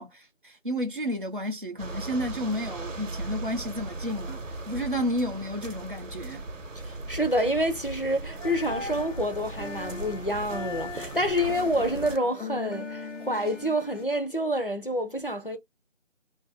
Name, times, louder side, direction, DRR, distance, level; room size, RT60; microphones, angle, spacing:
voice 1, 0.0-6.4, equal, 45° right, 0.5 m, -31 dB
sound 1, 1.8-12.2, right 2 dB, 80° right, 0.7 m, -38 dB
voice 2, 6.8-15.6, equal, 45° left, 0.4 m, -28 dB
sound 2, 8.4-14.0, left 3 dB, 70° left, 0.9 m, -39 dB
2.5 x 2.3 x 2.5 m
figure-of-eight pair, 175°, 38 cm